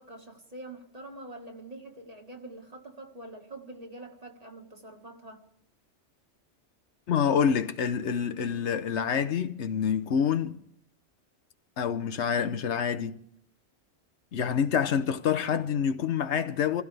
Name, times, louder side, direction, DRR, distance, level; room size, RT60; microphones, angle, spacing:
voice 1, 0.0-5.4, right 2 dB, 35° right, 1.8 m, -45 dB
voice 2, 7.1-10.6 11.8-13.2 14.3-16.8, left 7 dB, 75° left, 1.1 m, -27 dB
26.5 x 16.0 x 3.3 m
omnidirectional pair, 1.2 m